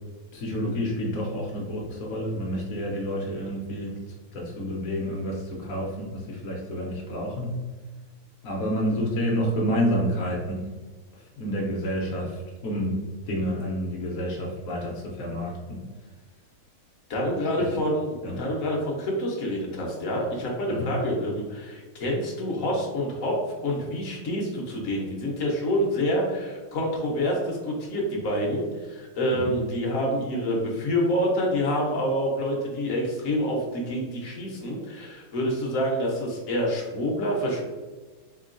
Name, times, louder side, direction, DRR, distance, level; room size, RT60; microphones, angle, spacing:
voice 1, 0.3-3.9 4.3-7.6 8.4-10.7 11.4-13.0 13.3-15.8 17.6-17.7 18.2-18.4 20.7-20.9 29.3-29.5, equal, 90° left, -2 dB, 0.7 m, -29 dB
voice 2, 17.1-23.4 23.6-37.6, equal, 60° left, -1 dB, 0.9 m, -27 dB
3.7 x 3.6 x 2.5 m, 1.3 s
omnidirectional pair, 2.4 m